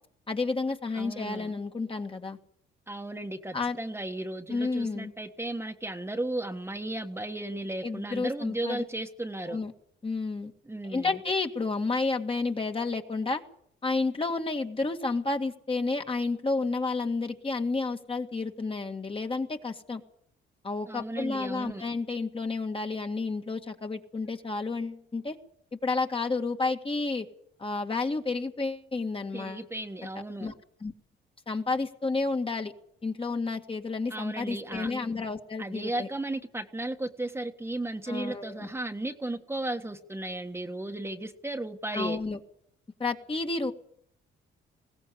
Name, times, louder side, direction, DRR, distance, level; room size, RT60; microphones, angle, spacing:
voice 1, 0.3-2.4 3.5-3.8 4.5-5.1 7.8-8.8 9.5-9.7 10.0-10.5 10.8-13.4 13.8-20.0 20.6-25.4 25.8-27.3 27.6-29.6 30.0-30.1 30.4-30.5 30.8-30.9 31.5-32.7 33.0-36.1 38.1-38.7 41.9-42.4 43.0-43.7, left 3 dB, 25° left, 4 dB, 2.0 m, -31 dB
voice 2, 0.9-1.5 2.9-9.6 10.7-11.2 20.9-21.8 29.3-30.6 34.1-34.9 35.6-42.2, right 1 dB, 10° right, 4 dB, 1.5 m, -35 dB
20.5 x 16.5 x 8.2 m, 0.68 s
cardioid pair, 90°, 20 cm